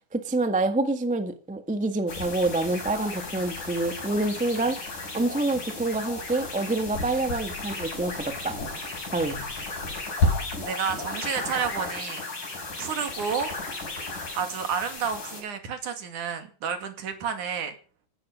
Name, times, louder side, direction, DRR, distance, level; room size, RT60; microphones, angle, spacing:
voice 1, 0.1-4.8 5.1-8.6 9.1-9.4, right 2 dB, 10° right, 8 dB, 0.5 m, -27 dB
sound 1, 2.1-15.4, left 2 dB, 70° left, 7.7 m, -33 dB
voice 2, 10.6-12.2 12.8-13.5 14.4-17.7, right 7 dB, 70° right, 8 dB, 3.8 m, -30 dB
16.0 x 12.5 x 6.3 m, 0.39 s
omnidirectional pair, 3.7 m